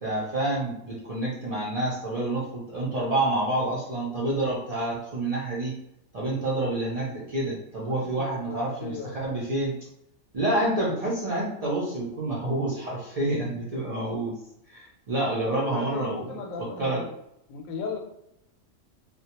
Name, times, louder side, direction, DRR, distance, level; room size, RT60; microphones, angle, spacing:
voice 1, 0.0-5.7 6.1-9.7 10.3-14.3 14.7-17.0, right 1 dB, 55° right, -7 dB, 0.4 m, -28 dB
voice 2, 8.0-9.5 15.6-17.1 17.5-18.0, left 4 dB, 90° left, 2 dB, 1.0 m, -37 dB
2.3 x 2.1 x 2.8 m, 0.79 s
omnidirectional pair, 1.3 m